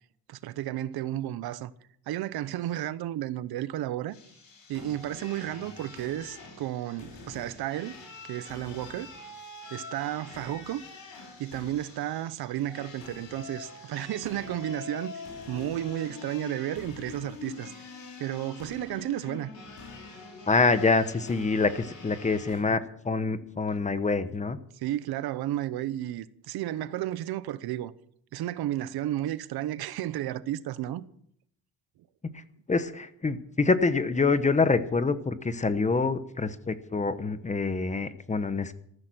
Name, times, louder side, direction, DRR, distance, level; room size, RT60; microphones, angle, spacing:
voice 1, 0.3-1.7 2.1-4.2 4.7-8.0 8.2-9.1 9.7-10.9 11.4-17.7 18.2-19.5 24.7-27.9 28.3-31.1, right 13 dB, 85° right, 0.9 m, -33 dB
sound 1, 4.1-22.6, left 4 dB, 65° left, 6.3 m, -45 dB
voice 2, 20.5-24.6 32.7-38.7, left 4 dB, 20° left, 1.0 m, -26 dB
14.5 x 13.5 x 6.1 m
cardioid pair, 140°, 36 cm